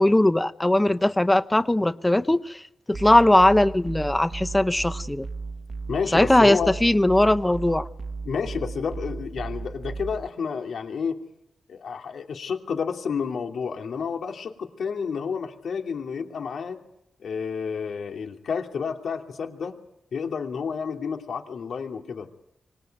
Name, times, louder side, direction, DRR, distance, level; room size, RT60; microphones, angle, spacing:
voice 1, 0.0-2.6 2.9-5.3 6.1-7.9, left 1 dB, 15° left, 13 dB, 0.9 m, -19 dB
sound 1, 2.9-10.3, right 4 dB, 55° right, 1.2 m, -35 dB
voice 2, 5.9-6.8 8.2-11.2 11.7-16.8 17.2-19.8 20.1-22.4, left 6 dB, 85° left, 4 dB, 2.7 m, -30 dB
25.0 x 20.0 x 9.3 m, 0.81 s
wide cardioid pair, 100°, 0 cm